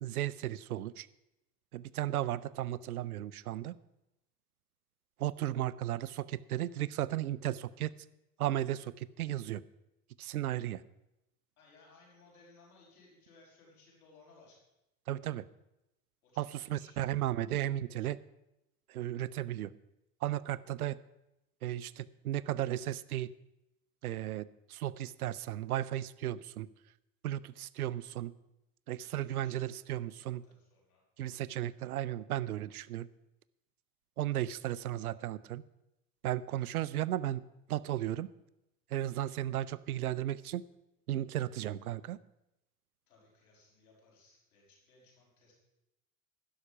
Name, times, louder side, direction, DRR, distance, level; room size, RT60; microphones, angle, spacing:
voice 1, 0.0-1.1 1.7-3.8 5.2-7.9 8.4-9.6 10.2-10.8 15.1-15.5 16.4-18.2 18.9-19.7 20.2-21.0 21.6-23.3 24.0-26.7 27.2-28.3 28.9-30.4 31.2-33.1 34.2-35.6 36.2-38.3 38.9-40.6 41.1-42.2, right 13 dB, 80° right, 19 dB, 0.6 m, -35 dB
voice 2, 11.6-14.6 16.2-17.3 29.1-31.0 43.1-45.5, left 3 dB, 75° left, -2 dB, 5.5 m, -62 dB
12.0 x 10.5 x 5.8 m, 0.91 s
figure-of-eight pair, 70°, 44 cm